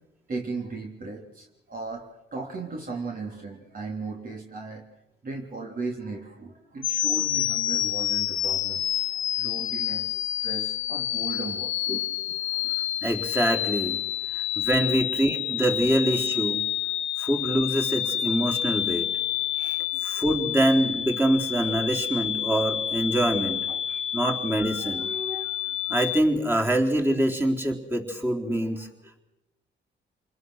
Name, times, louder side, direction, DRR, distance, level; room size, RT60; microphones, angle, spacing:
voice 1, 0.3-4.8 5.2-8.8 9.1-12.7 14.2-14.3 15.8-15.9 17.2-17.3 19.6-19.7 19.9-20.0 23.4-23.7 25.1-25.5 28.8-29.1, right 3 dB, 45° right, 0 dB, 3.6 m, -37 dB
sound 1, 6.8-26.2, left 12 dB, 75° left, 1.0 m, -28 dB
voice 2, 13.0-14.0 14.3-16.6 17.2-19.1 19.6-23.8 24.1-25.5 25.9-28.9, right 1 dB, 10° right, 0 dB, 4.0 m, -25 dB
27.5 x 21.0 x 6.6 m, 0.93 s
cardioid pair, 90°, 20 cm